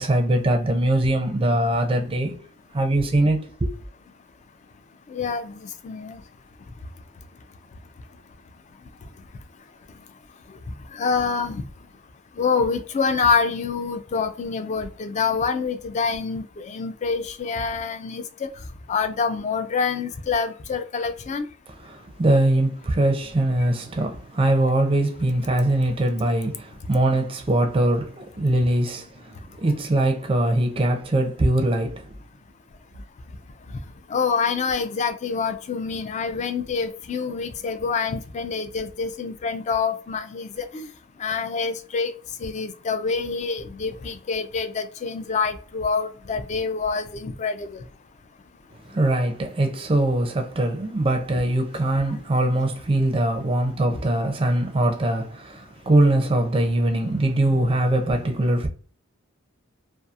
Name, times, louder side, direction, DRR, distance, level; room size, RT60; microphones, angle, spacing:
voice 1, 0.0-2.4 2.7-3.7 21.8-32.1 48.9-58.7, right 1 dB, 25° right, 0.4 m, -22 dB
voice 2, 5.1-6.2 10.9-11.6 12.4-18.5 18.9-21.5 34.1-40.9 41.2-42.1 42.4-47.8, left 5 dB, 35° left, 0.3 m, -26 dB
2.7 x 2.3 x 2.3 m
head